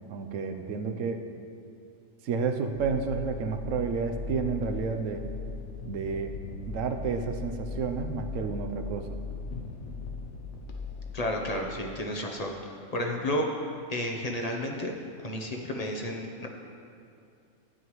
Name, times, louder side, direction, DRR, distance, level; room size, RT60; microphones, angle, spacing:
voice 1, 0.1-1.2 2.2-5.2 5.8-6.4 6.7-9.1, right 5 dB, 70° right, 6 dB, 1.0 m, -31 dB
sound 1, 2.7-11.6, left 4 dB, 60° left, 1.1 m, -38 dB
voice 2, 11.1-13.5 13.9-14.9 15.2-16.5, left 1 dB, 35° left, 1 dB, 0.7 m, -32 dB
12.5 x 9.2 x 3.1 m, 2.5 s
omnidirectional pair, 1.4 m